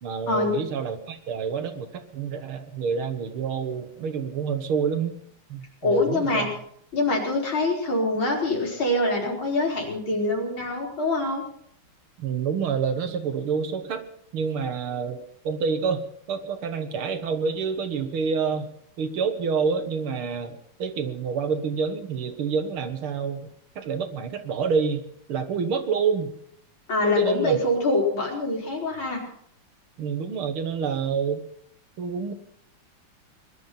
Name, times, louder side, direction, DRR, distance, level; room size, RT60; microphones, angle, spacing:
voice 1, 0.0-5.2 5.5-6.5 12.2-14.1 14.3-18.7 19.0-23.5 23.8-26.3 27.0-27.6 30.0-31.4 32.0-32.3, right 6 dB, 75° right, 8 dB, 2.2 m, -28 dB
voice 2, 5.8-6.5 6.9-11.4 26.9-29.2, left 2 dB, 65° left, -1 dB, 4.9 m, -24 dB
21.0 x 12.0 x 5.8 m, 0.67 s
omnidirectional pair, 2.4 m